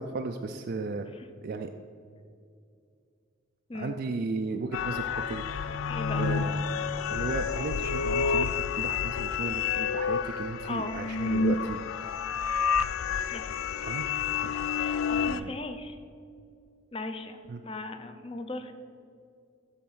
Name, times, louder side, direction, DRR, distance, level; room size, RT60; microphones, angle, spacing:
voice 1, 0.0-1.1 1.4-1.7 3.7-5.8 6.1-6.6 7.1-11.8 13.8-14.1 14.4-14.6 15.2-15.6 17.5-17.6, right 4 dB, 50° right, 5 dB, 0.3 m, -35 dB
sound 1, 4.7-15.4, left 6 dB, 85° left, 0.4 m, -29 dB
voice 2, 5.9-6.3 10.6-11.0 13.3-13.5 14.8-16.0 16.9-18.7, left 2 dB, 25° left, 8 dB, 0.6 m, -38 dB
12.5 x 4.1 x 5.5 m, 2.4 s
head